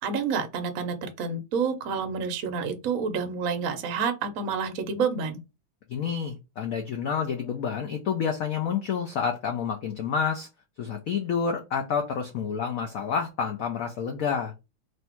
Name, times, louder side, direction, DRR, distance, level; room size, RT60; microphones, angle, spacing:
voice 1, 0.0-5.4, right 5 dB, 65° right, 0.8 m, -29 dB
voice 2, 5.9-10.5 10.8-14.5, left 6 dB, 80° left, 0.7 m, -29 dB
3.3 x 2.6 x 4.3 m
omnidirectional pair, 2.2 m